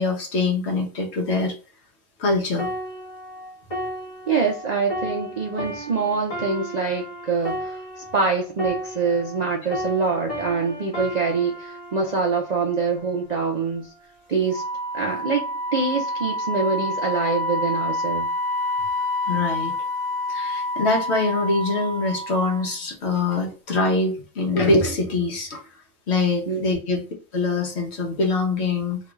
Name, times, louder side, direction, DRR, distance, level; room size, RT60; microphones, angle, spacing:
voice 1, 0.0-1.5 2.2-2.7 19.3-19.7 20.3-25.6 26.1-27.0 27.3-29.0, left 3 dB, 55° left, 2 dB, 1.1 m, -23 dB
sound 1, 2.6-9.4 9.7-13.3 13.9-14.1, equal, 30° left, 1.0 m, -34 dB
voice 2, 4.3-13.9 14.3-14.6 14.9-15.4 15.7-18.3 26.5-26.7, right 4 dB, 65° right, 0 dB, 0.4 m, -25 dB
Wind instrument woodwind instrument, 14.5-22.7, left 1 dB, 35° right, 0.8 m, -28 dB
2.9 x 2.4 x 3.0 m, 0.37 s
omnidirectional pair, 1.4 m